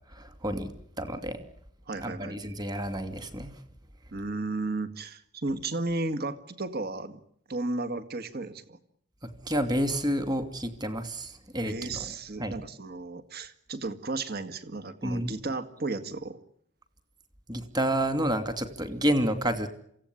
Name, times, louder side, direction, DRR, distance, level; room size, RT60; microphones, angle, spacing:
voice 1, 0.1-0.7 1.0-1.4 2.0-3.5 9.2-12.1 12.4-12.6 15.0-15.3 17.5-19.7, right 1 dB, 20° right, 9 dB, 2.6 m, -29 dB
voice 2, 1.9-2.4 4.1-7.2 7.5-8.8 11.6-16.4, right 2 dB, 45° right, 10 dB, 1.9 m, -34 dB
27.5 x 16.5 x 9.9 m, 0.71 s
head